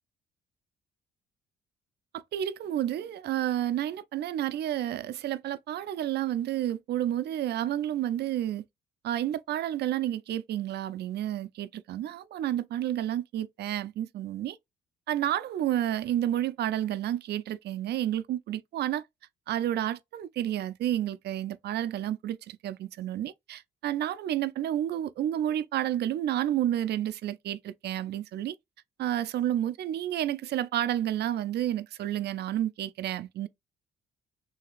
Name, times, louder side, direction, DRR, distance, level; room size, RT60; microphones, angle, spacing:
voice 1, 2.1-8.6 9.0-14.6 15.1-19.0 19.5-28.5 29.0-33.5, right 12 dB, 60° right, 0.5 m, -30 dB
6.0 x 2.8 x 2.5 m
cardioid pair, 90°, 19 cm